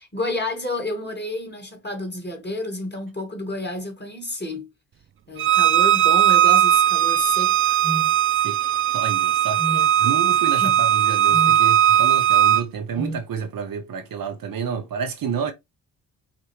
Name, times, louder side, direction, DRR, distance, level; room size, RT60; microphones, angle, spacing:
voice 1, 0.0-4.7 5.3-7.8 9.7-9.9 10.5-10.8, left 2 dB, 25° left, 2.2 m, -30 dB
Bowed string instrument, 5.4-12.6, right 11 dB, 30° right, 0.4 m, -18 dB
sound 1, 7.8-8.1 9.6-9.9 11.3-11.6 13.0-13.3, right 1 dB, ahead, 0.9 m, -30 dB
voice 2, 8.3-15.5, right 6 dB, 50° right, 0.8 m, -30 dB
5.8 x 2.5 x 3.1 m
hypercardioid pair, 40°, 43 cm